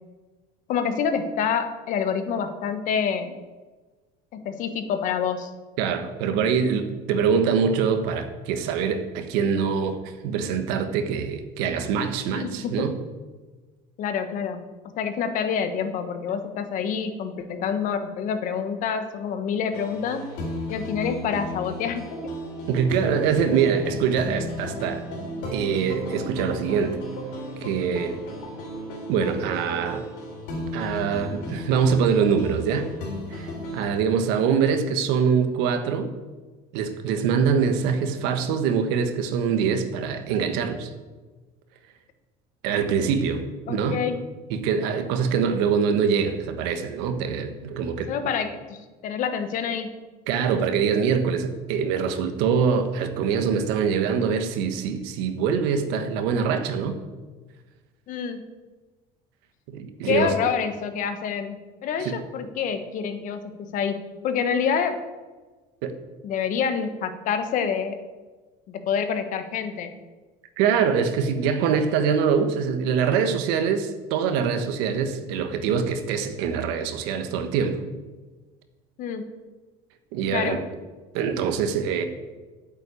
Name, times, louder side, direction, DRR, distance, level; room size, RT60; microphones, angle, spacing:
voice 1, 0.7-3.4 4.3-5.5 12.3-12.9 14.0-14.6 15.0-20.2 20.7-22.3 43.7-44.2 48.1-49.9 58.1-58.4 60.0-65.0 66.2-68.0 68.7-69.9 79.0-79.3 80.3-80.6, left 7 dB, 50° left, 9 dB, 1.3 m, -27 dB
voice 2, 5.8-13.0 22.7-25.0 25.5-27.0 27.6-28.2 29.1-30.1 30.7-32.9 33.3-36.1 36.7-40.9 42.6-44.0 44.5-48.1 50.3-57.0 59.7-60.4 62.0-62.2 65.8-66.0 70.6-77.8 80.1-80.6 81.1-82.0, right 6 dB, 80° right, 8 dB, 1.4 m, -24 dB
sound 1, 19.7-34.0, left 1 dB, 75° left, 4.2 m, -35 dB
9.1 x 7.7 x 8.5 m, 1.3 s
cardioid pair, 140°, 17 cm